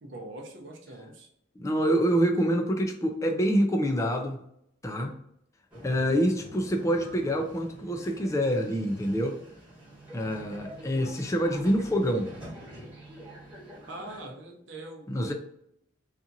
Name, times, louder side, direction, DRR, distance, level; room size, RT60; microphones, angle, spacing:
voice 1, 0.0-1.3 13.9-15.3, right 2 dB, 70° right, 2 dB, 0.7 m, -42 dB
voice 2, 1.6-4.4 4.8-5.2 5.8-9.4 10.1-12.3 15.1-15.3, equal, 15° left, 3 dB, 0.3 m, -26 dB
sound 1, 5.7-14.2, right 1 dB, 5° right, 1.2 m, -46 dB
2.8 x 2.5 x 2.5 m, 0.74 s
head